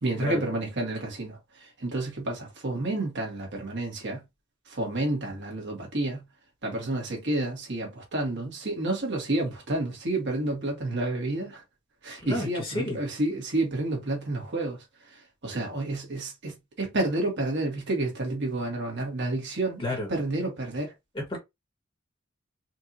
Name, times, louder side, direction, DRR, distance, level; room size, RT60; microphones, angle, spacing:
voice 1, 0.0-4.2 4.6-6.2 6.6-11.6 12.0-20.9, right 2 dB, 60° right, 1.8 m, -30 dB
voice 2, 12.2-13.0 19.8-20.1 21.1-21.4, left 1 dB, 25° left, 1.7 m, -31 dB
4.5 x 2.7 x 2.8 m
head